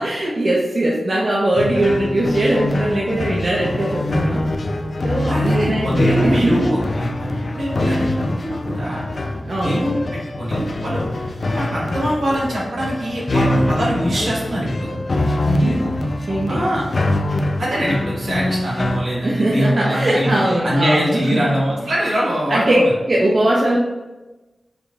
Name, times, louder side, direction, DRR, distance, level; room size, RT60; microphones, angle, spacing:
voice 1, 0.0-4.4 5.0-6.7 7.3-7.4 9.5-9.8 15.4-15.8 16.3-16.6 19.2-21.5 22.5-22.8 23.1-23.8, right 1 dB, 50° right, -4 dB, 0.6 m, -20 dB
sound 1, 1.5-19.0, left 1 dB, 55° left, 0.4 m, -23 dB
voice 2, 5.3-7.3 7.5-9.0 9.6-11.0 11.4-14.9 16.5-16.9 17.6-22.9, equal, 85° right, -6 dB, 1.4 m, -23 dB
4.9 x 2.7 x 2.3 m, 1.1 s
wide cardioid pair, 110°, 0 cm